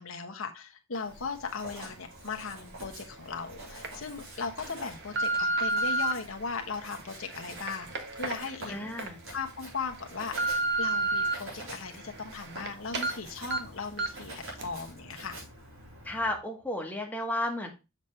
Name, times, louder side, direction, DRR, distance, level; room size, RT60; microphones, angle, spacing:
voice 1, 0.0-7.9 8.1-15.4, left 4 dB, 80° left, 4 dB, 1.1 m, -38 dB
Writing, 1.0-16.4, right 1 dB, 85° right, 4.4 m, -47 dB
sound 1, 2.8-2.9 3.6-3.9 4.5-6.1 6.8-9.1 9.5-9.6 10.0-11.3 11.8-12.7 12.9-13.1 13.5-13.6 14.0-14.3 14.6-14.7, right 2 dB, 60° right, 1.3 m, -31 dB
voice 2, 8.7-9.2 16.0-17.7, left 1 dB, 10° left, 1 dB, 1.3 m, -33 dB
7.3 x 6.1 x 3.3 m, 0.27 s
head